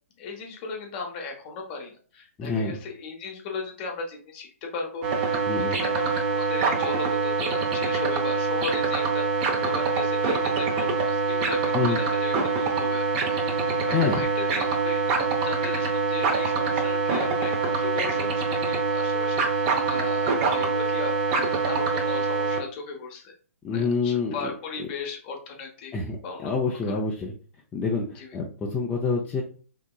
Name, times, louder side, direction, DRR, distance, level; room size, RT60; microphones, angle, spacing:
voice 1, 0.2-15.0 15.4-23.3 23.7-25.9 26.2-27.0 28.1-28.4, left 4 dB, 40° left, 2 dB, 0.9 m, -37 dB
voice 2, 2.4-2.8 5.5-5.8 11.7-12.0 13.9-14.2 23.6-24.5 25.9-26.2 26.4-27.3 27.7-29.4, left 4 dB, 15° left, -4 dB, 0.4 m, -27 dB
Colorino light probe old Sanyo TV remote, 5.0-22.6, right 4 dB, 35° right, 0.6 m, -25 dB
3.5 x 2.8 x 2.3 m, 0.41 s
hypercardioid pair, 125°, 8 cm